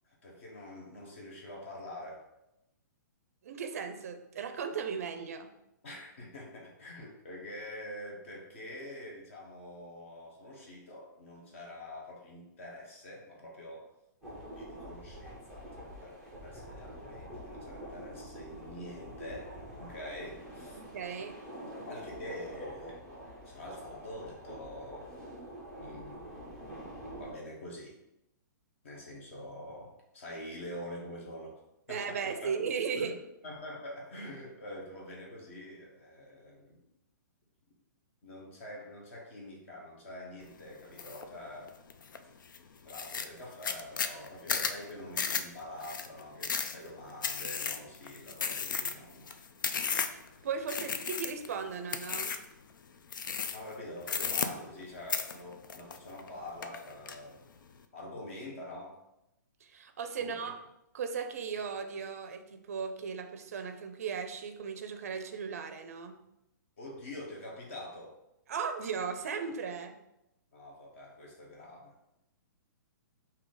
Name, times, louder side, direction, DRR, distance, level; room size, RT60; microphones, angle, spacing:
voice 1, 0.1-2.2 5.8-13.9 14.5-20.8 21.9-23.0 23.4-25.1 25.7-26.2 27.2-28.0 28.8-31.5 31.9-32.6 33.0-33.1 33.4-36.8 38.2-41.7 42.8-49.4 50.7-50.8 53.5-57.4 57.9-59.0 60.2-60.5 66.8-68.1 70.5-71.9, left 1 dB, 40° left, -2 dB, 1.2 m, -45 dB
voice 2, 3.4-5.5 20.8-21.4 31.9-33.1 50.4-52.3 59.6-60.5 60.9-66.1 68.5-69.9, right 6 dB, 50° right, 7 dB, 0.5 m, -36 dB
sound 1, 14.2-27.3, equal, 5° left, 0.6 m, -46 dB
sound 2, 41.0-41.2 41.7-42.2 42.5-42.6 42.9-50.3 50.7-51.5 51.9-52.5 53.1-53.7 54.0-54.8 55.1-56.3 56.6-57.2, left 6 dB, 80° left, 0.4 m, -34 dB
4.8 x 2.8 x 3.8 m, 0.88 s
hypercardioid pair, 180°, 10 cm